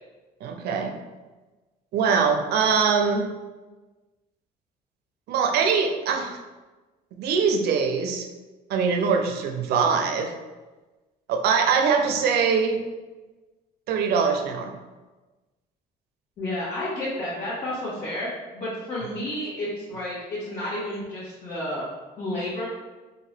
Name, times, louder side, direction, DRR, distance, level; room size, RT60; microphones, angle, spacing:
voice 1, 0.4-1.0 1.9-3.3 5.3-6.4 7.2-8.3 8.7-10.3 11.3-12.8 13.9-14.7, right 5 dB, 70° right, 4 dB, 0.5 m, -22 dB
voice 2, 16.4-18.3 18.5-21.9 22.2-22.7, left 1 dB, 60° left, -11 dB, 1.4 m, -31 dB
2.8 x 2.6 x 3.2 m, 1.2 s
cardioid pair, 110°, 17 cm